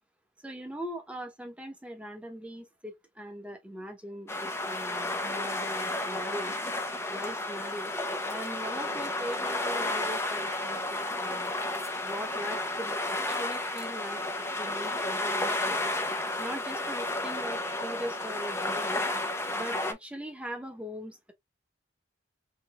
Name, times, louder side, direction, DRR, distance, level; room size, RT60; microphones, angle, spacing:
voice 1, 0.4-6.6 7.1-8.0 8.3-11.5 12.0-14.2 14.6-15.8 16.4-19.0 19.5-21.3, equal, 5° right, 0.9 m, -40 dB
sound 1, 4.3-19.9, left 2 dB, 15° left, 0.6 m, -32 dB
3.3 x 3.0 x 2.9 m
head